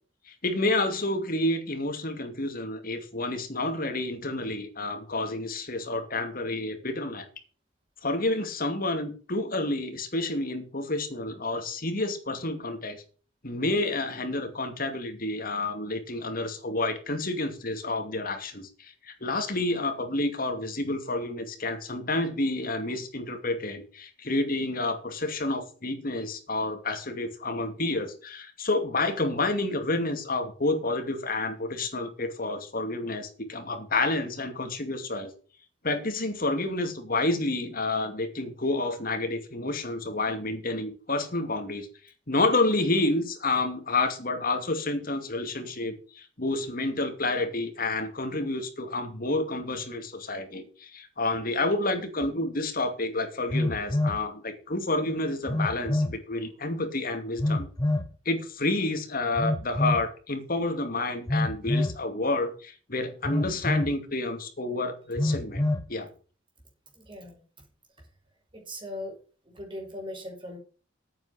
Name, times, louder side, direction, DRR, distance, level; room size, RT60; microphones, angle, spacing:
voice 1, 0.3-7.3 8.0-13.0 13.4-35.3 35.8-41.9 42.3-57.7 58.3-65.6 65.9-66.1, left 2 dB, 45° left, 6 dB, 2.5 m, -29 dB
Telephone, 52.2-52.3 53.5-54.2 55.5-56.2 57.4-58.1 59.4-60.1 61.3-62.0 63.2-64.0 65.2-65.9, left 1 dB, 20° left, 1.1 m, -27 dB
voice 2, 66.9-67.4 68.5-69.2 69.5-70.6, left 1 dB, 25° right, 2 dB, 5.6 m, -39 dB
9.1 x 8.8 x 6.6 m, 0.37 s
head